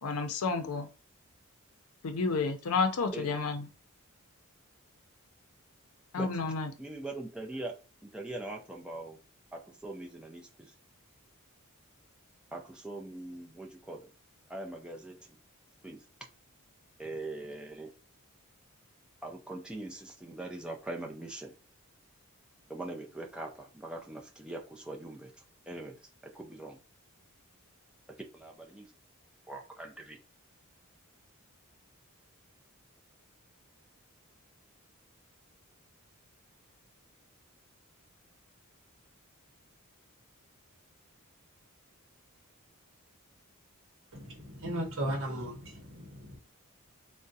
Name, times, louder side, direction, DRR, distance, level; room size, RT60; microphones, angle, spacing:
voice 1, 0.0-0.9 2.0-3.7 6.1-6.7, left 4 dB, 90° left, 0.5 m, -30 dB
voice 2, 6.8-7.7 8.1-9.2 9.5-10.7 12.5-14.1 14.5-15.1 15.8-16.0 17.0-17.9 19.2-21.5 22.7-25.3 25.7-25.9 26.4-26.8 28.3-28.9 29.5-30.2, right 2 dB, 5° right, 0.4 m, -41 dB
voice 3, 44.1-46.4, right 1 dB, 60° right, 0.8 m, -36 dB
3.6 x 2.1 x 2.6 m
head